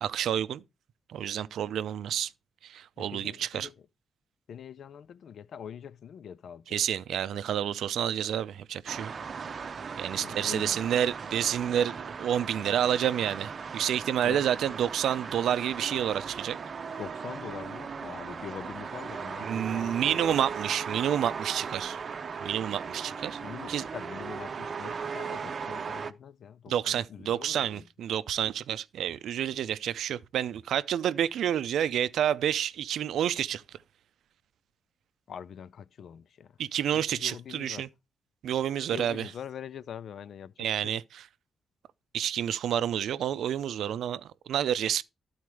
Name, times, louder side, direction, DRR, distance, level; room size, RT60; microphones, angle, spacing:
voice 1, 0.0-0.6 1.1-2.3 2.6-3.7 6.7-9.2 10.0-16.6 19.4-22.0 22.4-23.4 23.7-23.8 26.7-33.8 36.6-37.9 38.4-39.3 40.6-41.2 42.1-45.0, right 10 dB, 80° right, 0.4 m, -29 dB
voice 2, 3.0-3.7 4.5-6.8 7.3-7.4 10.1-10.8 12.5-12.7 14.2-14.4 17.0-20.5 23.4-27.9 35.3-36.6 36.9-37.9 38.9-40.9, left 8 dB, 65° left, 0.4 m, -43 dB
sound 1, 8.9-26.1, right 6 dB, 45° right, 0.7 m, -38 dB
12.0 x 4.3 x 4.7 m
cardioid pair, 95°, 0 cm